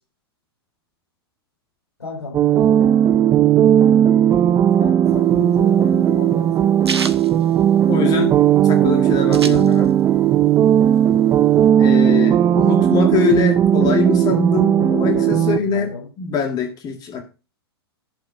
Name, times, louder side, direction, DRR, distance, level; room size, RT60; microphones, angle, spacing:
voice 1, 2.0-3.0 4.8-7.3 7.6-8.1 14.7-16.1, left 2 dB, 80° left, -4 dB, 6.1 m, -34 dB
sound 1, 2.3-15.6, right 10 dB, 25° right, 0.7 m, -16 dB
sound 2, 5.1-8.3 8.6-8.7 8.9-10.2 10.5-11.7, right 5 dB, 80° right, 1.3 m, -30 dB
voice 2, 7.9-8.3 8.6-9.9 11.8-15.9 16.2-17.2, left 4 dB, 30° left, 5 dB, 2.0 m, -22 dB
11.5 x 5.2 x 6.6 m, 0.32 s
figure-of-eight pair, 105°, 13 cm